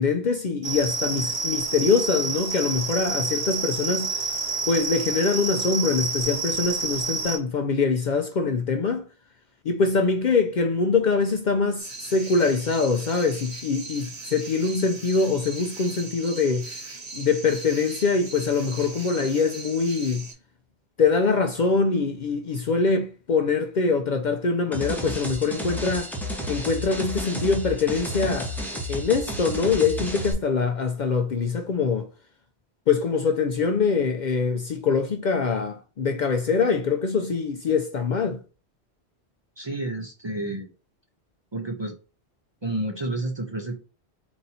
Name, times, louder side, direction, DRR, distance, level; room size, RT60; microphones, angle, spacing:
voice 1, 0.0-4.4 4.7-9.0 9.6-16.7 17.1-20.3 21.0-26.1 26.5-32.1 32.9-38.4, left 4 dB, 55° left, 0.5 m, -24 dB
sound 1, 0.6-7.4, right 4 dB, 50° right, 1.1 m, -28 dB
sound 2, 11.8-20.3, right 3 dB, 80° right, 1.7 m, -39 dB
sound 3, 24.7-30.3, equal, ahead, 0.8 m, -32 dB
voice 2, 39.6-40.7 41.5-41.9 42.6-43.8, right 1 dB, 30° right, 0.6 m, -30 dB
3.9 x 2.7 x 4.1 m
omnidirectional pair, 1.1 m